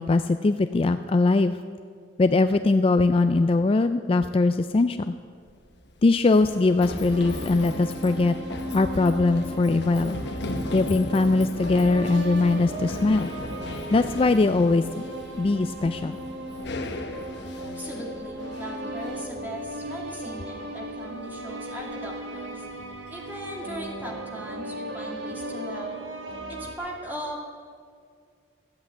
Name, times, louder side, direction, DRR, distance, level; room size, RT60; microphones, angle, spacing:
voice 1, 0.0-1.6 2.2-5.1 6.0-8.3 8.7-10.2 10.7-13.3 13.9-14.8 15.4-16.2, left 3 dB, 30° left, 10 dB, 0.3 m, -21 dB
Run, 5.3-23.9, left 2 dB, 65° left, 1.0 m, -38 dB
sound 1, 7.1-26.8, right 1 dB, 90° right, 1.7 m, -36 dB
voice 2, 17.8-22.6 23.1-25.9 26.5-27.5, equal, 10° right, -1 dB, 2.4 m, -38 dB
13.5 x 8.2 x 8.7 m, 2.1 s
head